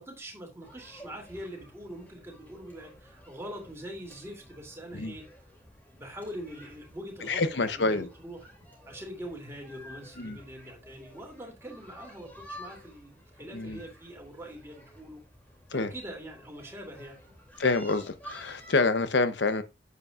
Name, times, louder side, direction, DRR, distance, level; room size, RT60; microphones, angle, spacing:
voice 1, 0.0-5.2 5.9-8.4 8.9-15.2 15.7-17.2, equal, 15° right, 2.8 m, -43 dB
sound 1, 0.6-18.9, equal, 10° left, 2.7 m, -51 dB
voice 2, 7.2-8.1 10.2-10.4 13.5-13.8 15.7-15.9 17.6-19.6, left 3 dB, 85° left, 0.8 m, -27 dB
9.2 x 8.2 x 2.4 m
head